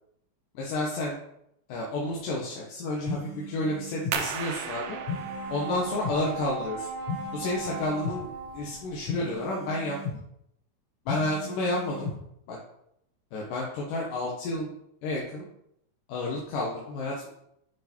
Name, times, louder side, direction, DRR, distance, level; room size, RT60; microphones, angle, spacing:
voice 1, 0.5-1.2 1.7-5.0 5.5-6.9 7.3-10.0 11.1-12.1 12.5-12.6 13.3-14.7 15.0-15.5 16.1-17.3, left 2 dB, 85° left, -3 dB, 2.8 m, -31 dB
sound 1, 3.1-4.2 5.1-6.2 7.1-8.2 9.1-10.2 11.1-12.2, left 4 dB, 65° left, 1.2 m, -36 dB
sound 2, 4.1-9.5, right 7 dB, 75° right, 2.1 m, -39 dB
Brass instrument, 4.6-9.0, right 3 dB, 15° right, 2.7 m, -38 dB
7.6 x 6.1 x 4.4 m, 0.78 s
omnidirectional pair, 3.7 m